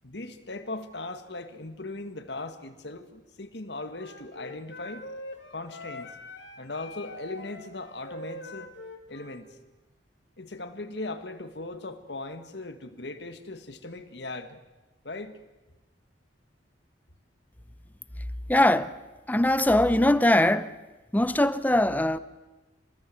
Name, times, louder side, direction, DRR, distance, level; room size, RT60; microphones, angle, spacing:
voice 1, 0.0-5.0 5.5-6.1 6.6-8.7 9.1-9.5 10.4-14.6 15.0-15.4, left 2 dB, 70° left, 2.0 m, -38 dB
Wind instrument woodwind instrument, 3.9-9.4, left 2 dB, 90° left, 3.1 m, -43 dB
voice 2, 18.5-18.9 19.3-20.7 21.1-22.2, left 1 dB, 10° left, 0.7 m, -21 dB
26.5 x 20.0 x 7.9 m
head